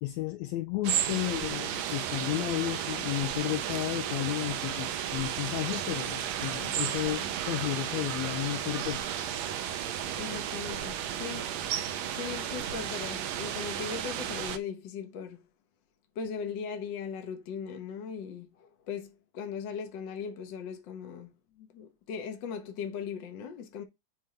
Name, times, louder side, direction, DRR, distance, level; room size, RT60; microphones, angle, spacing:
voice 1, 0.0-9.1, left 16 dB, 80° left, 1.7 m, -33 dB
sound 1, 0.8-14.6, right 10 dB, 75° right, 1.7 m, -33 dB
sound 2, 4.4-12.8, equal, 15° left, 0.9 m, -57 dB
voice 2, 10.2-11.5 12.1-15.5 16.1-23.8, left 6 dB, 55° left, 1.3 m, -39 dB
7.3 x 3.8 x 4.3 m
omnidirectional pair, 3.5 m